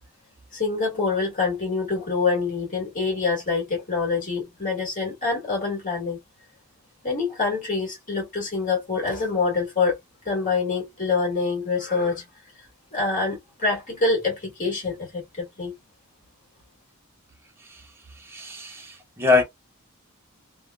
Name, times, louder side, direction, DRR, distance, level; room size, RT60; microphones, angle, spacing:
voice 1, 0.5-6.2 7.0-10.0 10.3-12.2 12.6-15.7, left 4 dB, 40° left, 1.8 m, -26 dB
voice 2, 18.1-19.4, left 4 dB, 10° right, 0.8 m, -24 dB
3.3 x 2.3 x 2.3 m
head